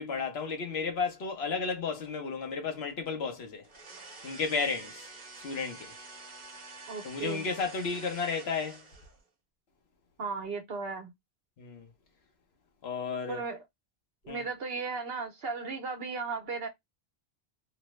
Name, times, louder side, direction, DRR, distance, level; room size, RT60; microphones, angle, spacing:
voice 1, 0.0-3.6 4.2-5.1 5.4-5.9 7.0-8.8 11.6-11.9 12.8-13.4 14.3-14.5, left 5 dB, 80° left, 1.2 m, -33 dB
sound 1, 3.6-9.3, right 3 dB, 45° right, 1.3 m, -48 dB
voice 2, 6.9-7.5 10.2-11.1 13.3-13.6 14.2-16.7, right 4 dB, 70° right, 1.1 m, -36 dB
3.2 x 2.1 x 3.0 m
omnidirectional pair, 1.0 m